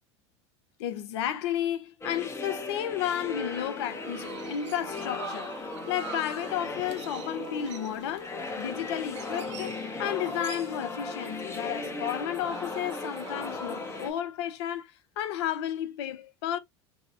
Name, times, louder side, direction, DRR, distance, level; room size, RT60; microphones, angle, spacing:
voice 1, 0.8-5.6 5.9-16.6, left 10 dB, 70° left, 0.5 m, -32 dB
sound 1, 2.0-14.1, left 3 dB, 20° left, 0.6 m, -37 dB
Chirp tweet, 3.6-14.2, right 10 dB, 80° right, 0.4 m, -47 dB
Giggle, 9.4-10.9 11.6-13.9, right 5 dB, 30° right, 0.7 m, -50 dB
2.7 x 2.0 x 2.5 m
hypercardioid pair, 90°, 15 cm